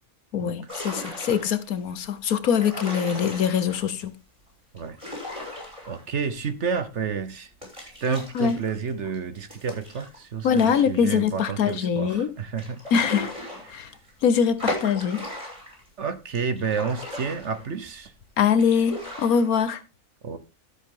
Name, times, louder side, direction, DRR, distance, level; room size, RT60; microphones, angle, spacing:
voice 1, 0.3-4.1 8.3-8.6 10.4-12.3 12.9-13.3 13.7-13.9 14.2-15.2 18.4-19.8, left 7 dB, 70° left, 1.4 m, -23 dB
sound 1, 0.7-1.7 2.4-3.9 4.8-6.4 6.7-6.8 7.6-10.9 11.3-11.4 11.7-11.8 12.6-14.1 14.6-15.9 16.3-18.0 18.5-19.6, left 1 dB, 20° right, 6.1 m, -36 dB
voice 2, 5.9-7.5 7.8-12.8 16.0-18.1 20.2-20.4, right 5 dB, 55° right, 1.2 m, -30 dB
13.0 x 7.8 x 3.8 m
omnidirectional pair, 1.6 m